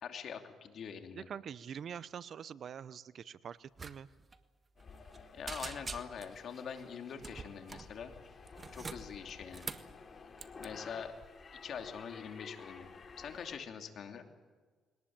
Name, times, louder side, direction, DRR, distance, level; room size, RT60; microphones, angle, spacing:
voice 1, 0.0-1.3 5.3-8.1 8.7-9.7 10.6-11.1 11.6-12.9 13.2-14.3, left 7 dB, 65° left, 6 dB, 2.9 m, -44 dB
voice 2, 1.1-4.1, right 8 dB, 60° right, 18 dB, 0.8 m, -45 dB
sound 1, 3.8-3.9 4.2-4.4 4.8-5.2 5.5-6.4 7.2-7.9 8.5-9.9 10.4-10.7, right 4 dB, 30° right, 1.6 m, -44 dB
sound 2, 4.8-13.6, left 5 dB, 45° left, 3.0 m, -52 dB
21.5 x 19.0 x 8.9 m, 1.5 s
cardioid pair, 90°, 0 cm